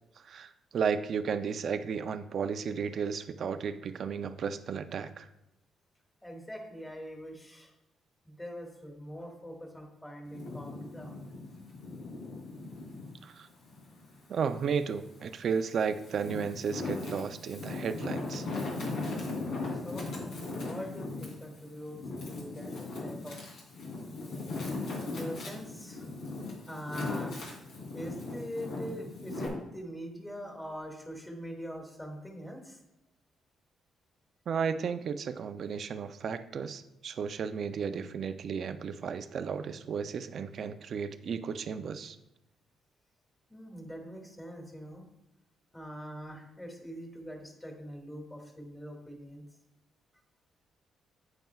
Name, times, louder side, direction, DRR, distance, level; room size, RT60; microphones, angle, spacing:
voice 1, 0.2-5.3 13.2-13.5 14.3-18.5 34.5-42.2, right 6 dB, 60° right, 10 dB, 0.5 m, -34 dB
voice 2, 6.2-7.7 8.3-11.2 19.8-20.1 20.6-22.0 22.3-23.4 25.1-26.1 26.7-27.4 27.9-32.8 43.5-45.0 45.7-49.4, equal, 10° left, 1 dB, 2.2 m, -43 dB
Wind, 10.3-13.1 13.6-14.9 15.5-29.5, left 3 dB, 85° left, 3.2 m, -38 dB
9.1 x 8.9 x 2.4 m, 0.91 s
cardioid pair, 90°, 0 cm